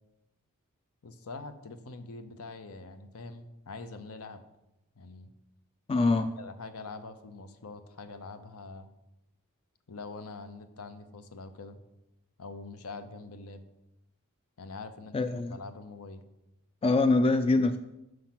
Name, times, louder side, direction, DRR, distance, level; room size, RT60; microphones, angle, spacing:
voice 1, 1.0-4.4 5.0-5.3 6.4-8.9 9.9-11.8 12.4-13.6 14.6-16.2, left 3 dB, 70° left, 10 dB, 0.7 m, -44 dB
voice 2, 5.9-6.3 15.1-15.6 16.8-17.8, left 3 dB, 25° left, 9 dB, 0.3 m, -24 dB
6.3 x 5.8 x 5.9 m, 0.91 s
head